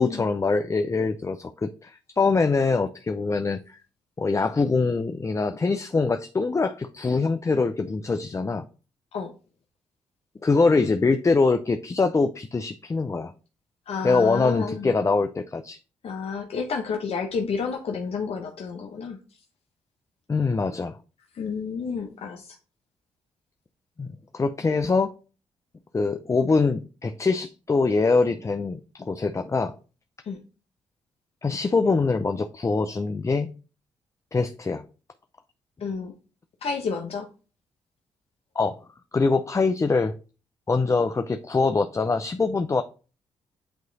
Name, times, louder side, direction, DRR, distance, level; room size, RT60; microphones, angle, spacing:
voice 1, 0.0-3.8 4.2-8.7 10.4-13.3 14.0-15.8 20.3-21.0 24.0-24.1 24.3-25.1 25.9-29.8 31.4-33.5 34.3-34.8 38.6-38.8 39.1-40.1 40.7-42.8, left 4 dB, 25° left, 8 dB, 0.5 m, -23 dB
voice 2, 13.9-14.9 16.0-19.2 21.3-22.6 30.2-30.4 35.8-36.1 36.6-37.3, left 5 dB, 60° left, 2 dB, 0.9 m, -30 dB
8.1 x 3.1 x 3.9 m, 0.35 s
supercardioid pair, 55°, 12 cm